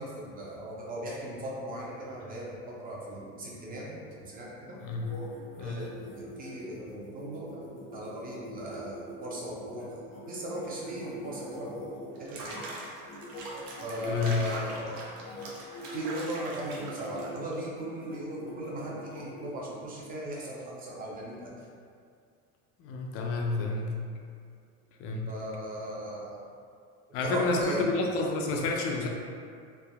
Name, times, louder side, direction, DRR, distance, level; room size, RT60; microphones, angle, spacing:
voice 1, 0.0-4.8 5.6-10.0 10.3-11.9 12.2-12.6 13.8-15.1 15.9-21.5 25.3-26.4 27.1-27.8, right 1 dB, 30° right, -4 dB, 0.6 m, -38 dB
sound 1, 4.8-12.6 13.1-14.7 15.2-15.5 15.7-16.0 16.3-17.3 17.7-19.5, left 1 dB, 75° left, 1.0 m, -43 dB
Water / Bathtub (filling or washing), 12.2-17.6, right 2 dB, 75° right, 0.6 m, -42 dB
voice 2, 14.1-14.5 22.8-24.0 25.0-25.3 27.1-29.1, left 3 dB, 50° left, 1 dB, 0.4 m, -29 dB
3.3 x 2.0 x 2.2 m, 2.3 s
supercardioid pair, 125°, 30 cm